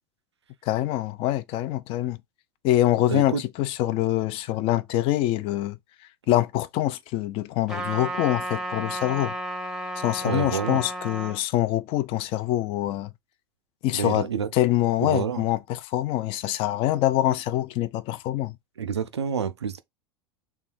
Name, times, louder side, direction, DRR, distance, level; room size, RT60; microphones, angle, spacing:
voice 1, 0.6-2.2 2.6-5.8 6.3-9.3 10.0-13.1 13.8-18.6, left 14 dB, 40° left, 0.4 m, -25 dB
voice 2, 3.1-3.4 10.2-10.8 13.9-14.5 15.0-15.4 18.8-19.8, right 7 dB, 75° right, 0.5 m, -28 dB
Trumpet, 7.7-11.4, right 1 dB, 5° right, 0.7 m, -32 dB
3.3 x 2.3 x 4.4 m
figure-of-eight pair, 80°, 14 cm